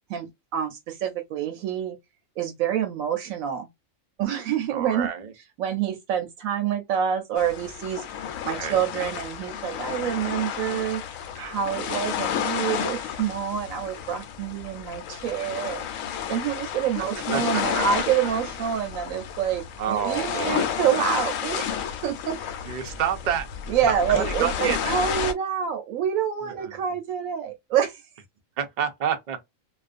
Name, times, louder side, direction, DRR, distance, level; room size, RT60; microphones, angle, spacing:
voice 1, 0.1-2.0 2.4-3.7 4.2-5.1 5.6-8.0 8.4-11.0 11.4-15.9 16.3-22.4 23.7-28.0, right 9 dB, 85° right, 1.0 m, -27 dB
voice 2, 4.7-5.3 8.6-8.8 17.0-17.1 17.3-17.8 19.8-20.7 22.6-23.5 23.9-24.8 26.4-26.7 28.6-29.4, right 8 dB, 50° right, 0.5 m, -29 dB
sound 1, 7.4-25.3, left 8 dB, 75° left, 0.9 m, -31 dB
2.4 x 2.3 x 2.4 m
omnidirectional pair, 1.4 m